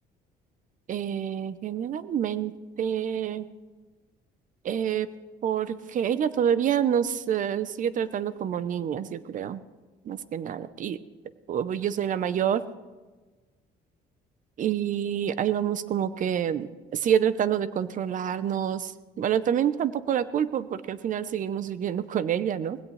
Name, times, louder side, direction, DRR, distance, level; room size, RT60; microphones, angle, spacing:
voice 1, 0.9-3.5 4.6-5.1 5.4-9.6 10.0-11.0 11.5-12.7 14.6-22.8, right 9 dB, 50° right, 15 dB, 0.7 m, -27 dB
19.5 x 16.5 x 3.3 m, 1.3 s
cardioid pair, 110°, 17 cm